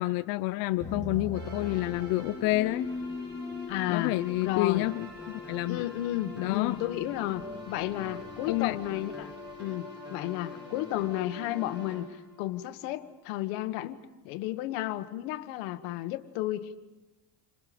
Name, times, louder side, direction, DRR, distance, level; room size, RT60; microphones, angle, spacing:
voice 1, 0.0-2.9 3.9-5.1 5.5-5.8 6.4-6.8 7.8-7.9 8.5-8.8, left 18 dB, 60° left, 10 dB, 0.7 m, -29 dB
sound 1, 0.8-9.6, left 3 dB, 15° left, 2.3 m, -42 dB
sound 2, 1.3-13.1, left 3 dB, 25° right, 6.2 m, -45 dB
voice 2, 3.7-4.9 5.7-9.3 9.6-16.8, left 14 dB, 85° left, 10 dB, 1.6 m, -33 dB
Guitar, 4.7-12.1, equal, 5° right, 2.8 m, -51 dB
30.0 x 26.5 x 5.2 m, 1.1 s
cardioid pair, 150°, 40 cm